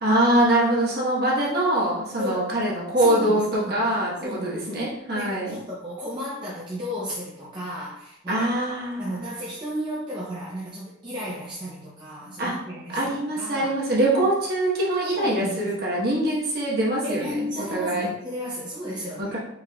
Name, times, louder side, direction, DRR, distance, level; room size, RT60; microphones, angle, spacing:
voice 1, 0.0-5.6 8.3-9.3 12.4-12.5 12.9-18.1 19.2-19.4, right 1 dB, 50° right, -5 dB, 1.2 m, -23 dB
voice 2, 2.2-2.5 2.9-4.8 5.1-8.5 9.0-13.7 15.2-15.8 17.0-19.4, equal, 20° right, -6 dB, 0.6 m, -34 dB
4.8 x 3.1 x 2.3 m, 0.81 s
head